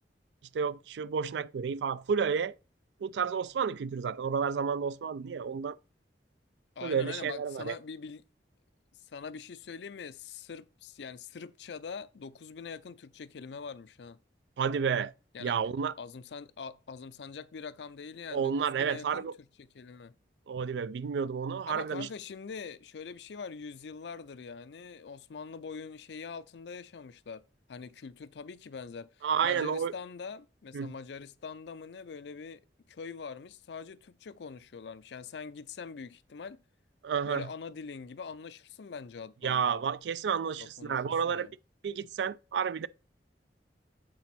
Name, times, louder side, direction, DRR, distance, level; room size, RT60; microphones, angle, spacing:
voice 1, 0.5-2.5 3.0-5.8 6.8-7.7 14.6-15.1 15.4-15.9 18.3-19.3 20.5-22.1 29.2-29.9 30.7-30.9 37.0-37.5 39.4-41.5 41.8-42.9, right 6 dB, 75° right, 0.3 m, -31 dB
voice 2, 6.8-8.2 9.1-14.2 15.3-15.5 16.0-19.3 19.6-20.1 21.7-27.4 27.7-32.6 32.9-36.6 37.3-39.8 40.6-41.5, left 5 dB, 70° left, 0.5 m, -43 dB
7.8 x 4.0 x 4.2 m
head